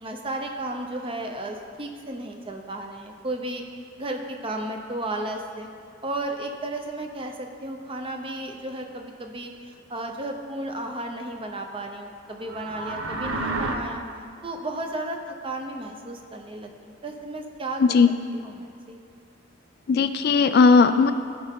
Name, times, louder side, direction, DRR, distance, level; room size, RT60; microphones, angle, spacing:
voice 1, 0.0-3.6 4.0-5.7 6.0-14.0 14.4-18.0 18.3-19.0, right 1 dB, 25° right, 3 dB, 0.7 m, -33 dB
sound 1, 12.4-13.7, right 3 dB, 80° right, 0.8 m, -30 dB
voice 2, 17.8-18.1 19.9-21.1, left 4 dB, 50° left, 10 dB, 0.3 m, -17 dB
15.0 x 5.5 x 3.6 m, 2.3 s
head